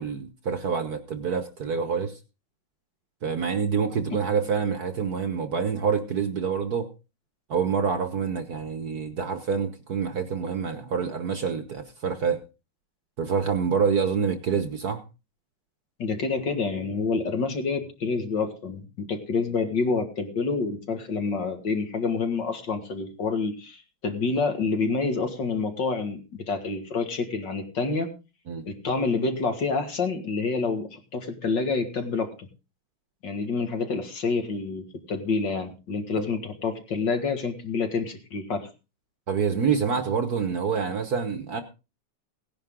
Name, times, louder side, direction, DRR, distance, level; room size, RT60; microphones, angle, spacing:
voice 1, 0.0-2.2 3.2-6.9 7.5-12.4 13.2-15.0 28.5-28.6 36.2-36.3 39.3-41.6, right 6 dB, 50° right, 9 dB, 1.4 m, -27 dB
voice 2, 16.0-28.1 28.6-32.5 33.2-38.7, left 4 dB, 55° left, 6 dB, 2.3 m, -28 dB
17.0 x 10.5 x 3.7 m, 0.30 s
omnidirectional pair, 2.4 m